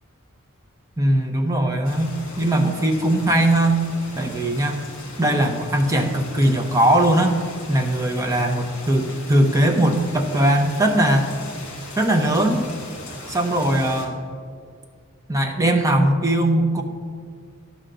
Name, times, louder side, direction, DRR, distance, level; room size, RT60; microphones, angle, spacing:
voice 1, 1.0-3.8 4.2-4.8 5.2-7.4 7.7-11.3 12.0-12.7 13.3-14.2 15.3-16.8, right 1 dB, 15° right, 4 dB, 0.7 m, -20 dB
sound 1, 1.8-14.1, left 2 dB, 60° left, 1.8 m, -38 dB
11.0 x 3.8 x 6.7 m, 2.1 s
head